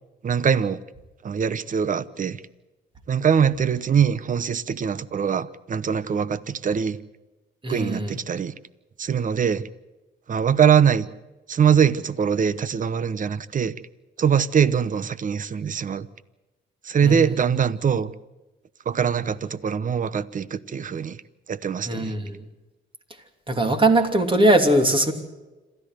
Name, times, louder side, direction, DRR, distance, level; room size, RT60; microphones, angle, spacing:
voice 1, 0.2-0.8 1.2-2.4 3.1-7.0 7.7-8.5 9.0-9.7 10.3-11.1 11.5-13.8 14.2-16.1 16.8-18.1 18.8-21.2 21.5-22.1, right 7 dB, 40° right, 1.0 m, -22 dB
voice 2, 7.6-8.1 17.0-17.4 21.8-22.4 23.5-25.1, right 1 dB, 25° right, 3.0 m, -20 dB
27.0 x 13.5 x 7.8 m
cardioid pair, 90°, 20 cm